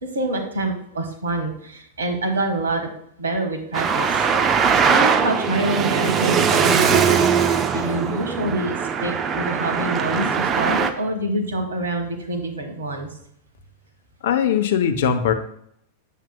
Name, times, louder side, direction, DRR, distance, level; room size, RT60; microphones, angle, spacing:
voice 1, 0.0-2.9 3.2-4.2 4.9-13.1, right 1 dB, 70° right, 3 dB, 1.5 m, -26 dB
Traffic noise roadway noise, 3.7-10.9, right 6 dB, 25° right, 0.6 m, -20 dB
voice 2, 14.2-15.3, left 8 dB, 55° left, 9 dB, 0.7 m, -20 dB
8.2 x 7.4 x 2.3 m, 0.70 s
figure-of-eight pair, 90°, 0 cm